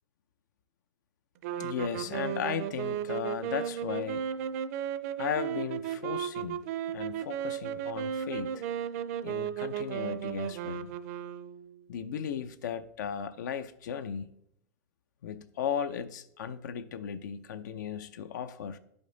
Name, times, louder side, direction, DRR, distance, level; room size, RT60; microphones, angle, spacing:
sound 1, 1.4-11.8, right 9 dB, 55° right, 0.5 m, -35 dB
voice 1, 1.6-4.3 5.2-6.6 6.9-8.6 9.2-10.9 11.9-14.3 15.2-18.8, left 8 dB, 80° left, 0.6 m, -36 dB
10.0 x 5.3 x 3.9 m
supercardioid pair, 145°, 10 cm